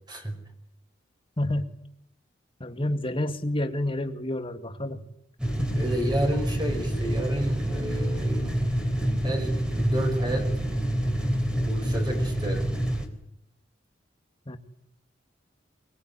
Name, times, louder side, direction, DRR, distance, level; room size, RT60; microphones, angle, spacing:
voice 1, 0.1-0.4 5.8-8.5 9.2-10.5 11.6-12.7, right 1 dB, 25° right, 4 dB, 5.2 m, -30 dB
voice 2, 1.4-1.8 2.6-5.0 5.6-5.9 14.5-14.6, left 1 dB, 30° left, 8 dB, 2.1 m, -29 dB
sound 1, 5.4-13.1, equal, 5° right, 3.8 m, -27 dB
23.0 x 21.5 x 9.9 m, 0.76 s
head